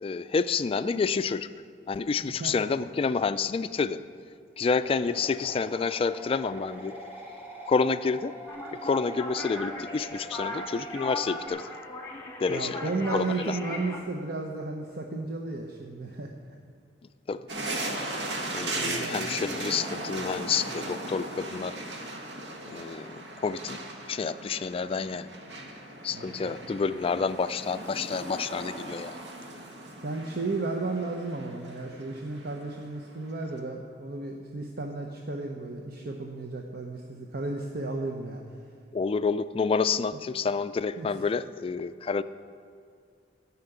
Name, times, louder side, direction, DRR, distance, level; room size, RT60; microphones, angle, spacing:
voice 1, 0.0-1.5 1.9-4.0 4.6-6.9 7.7-8.3 8.8-11.7 12.4-12.8 13.1-13.6 17.3-17.4 18.5-21.7 22.7-23.8 24.1-25.3 26.0-29.2 38.9-42.2, left 5 dB, 30° left, 13 dB, 0.3 m, -29 dB
voice 2, 2.2-2.5 12.5-16.3 18.7-19.2 26.1-26.8 30.0-38.4 40.1-40.2 41.0-41.1, right 3 dB, 60° right, 2 dB, 0.8 m, -34 dB
sound 1, 4.8-11.5, right 1 dB, 10° right, 1.5 m, -43 dB
sound 2, 8.5-14.0, left 2 dB, 15° left, 1.2 m, -38 dB
sound 3, 17.5-33.6, right 2 dB, 80° right, 1.3 m, -38 dB
11.5 x 5.8 x 8.9 m, 2.3 s
head